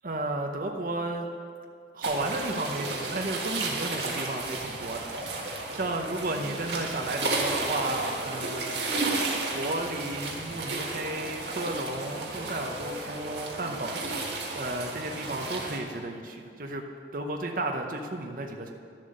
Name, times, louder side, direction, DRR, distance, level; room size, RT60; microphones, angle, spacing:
voice 1, 0.0-1.3 1.9-8.8 9.5-14.0 14.6-16.8 17.1-18.7, right 2 dB, 50° right, 3 dB, 0.7 m, -33 dB
sound 1, 2.0-15.8, right 2 dB, 70° right, 1.5 m, -33 dB
11.0 x 7.4 x 6.5 m, 2.3 s
head